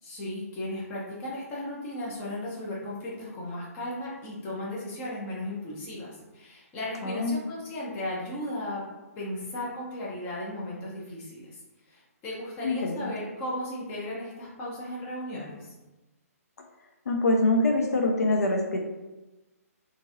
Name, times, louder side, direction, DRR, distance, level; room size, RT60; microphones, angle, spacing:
voice 1, 0.0-8.8 9.2-11.6 11.9-15.7, left 1 dB, 20° left, -5 dB, 0.8 m, -36 dB
voice 2, 7.0-7.4 12.6-13.1 17.1-18.8, left 2 dB, 80° left, 2 dB, 0.5 m, -24 dB
2.9 x 2.5 x 2.6 m, 1.1 s
hypercardioid pair, 155°, 9 cm